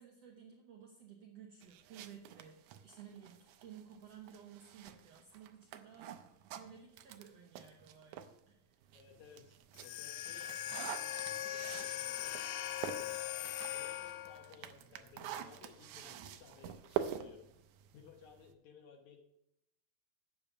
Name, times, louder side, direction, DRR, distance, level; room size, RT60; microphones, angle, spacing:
voice 1, 0.0-6.2 6.4-8.8, right 8 dB, 70° right, -1 dB, 1.6 m, -55 dB
sound 1, 1.6-8.4 8.8-18.5, right 10 dB, 85° right, 1.7 m, -46 dB
voice 2, 8.9-12.5 12.9-17.4 17.9-19.2, left 6 dB, 65° left, 3 dB, 2.1 m, -58 dB
sound 2, 9.7-14.5, left 13 dB, 85° left, 2.3 m, -40 dB
8.7 x 6.8 x 7.1 m, 0.81 s
omnidirectional pair, 4.1 m